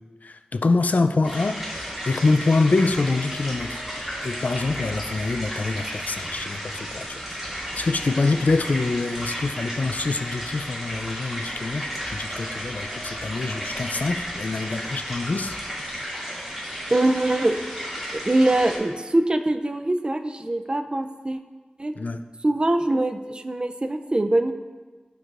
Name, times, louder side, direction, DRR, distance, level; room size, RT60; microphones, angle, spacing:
voice 1, 0.2-7.4 7.7-15.6 22.0-22.2, left 3 dB, 65° left, 9 dB, 0.3 m, -25 dB
sound 1, 1.2-18.8, equal, 10° right, 2.2 m, -33 dB
sound 2, 1.5-15.8, right 1 dB, 55° right, 1.1 m, -45 dB
voice 2, 16.9-17.5 18.1-21.4 21.8-21.9 22.4-24.5, right 1 dB, 35° right, 7 dB, 0.4 m, -23 dB
11.5 x 4.7 x 2.5 m, 1.3 s
wide cardioid pair, 70°, 3 cm